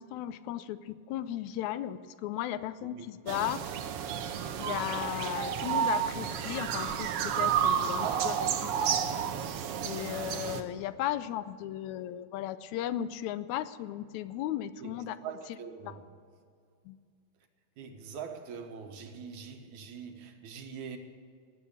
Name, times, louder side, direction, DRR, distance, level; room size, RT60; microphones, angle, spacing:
voice 1, 0.0-3.6 4.6-9.0 9.8-15.2 15.5-15.6 15.8-16.0 16.9-17.0, left 12 dB, 85° left, 1.9 m, -36 dB
sound 1, 3.3-10.6, right 8 dB, 65° right, 1.6 m, -31 dB
voice 2, 7.6-9.1 14.8-14.9 15.2-16.1 17.8-21.0, right 6 dB, 85° right, 2.7 m, -43 dB
18.5 x 8.4 x 8.5 m
omnidirectional pair, 3.3 m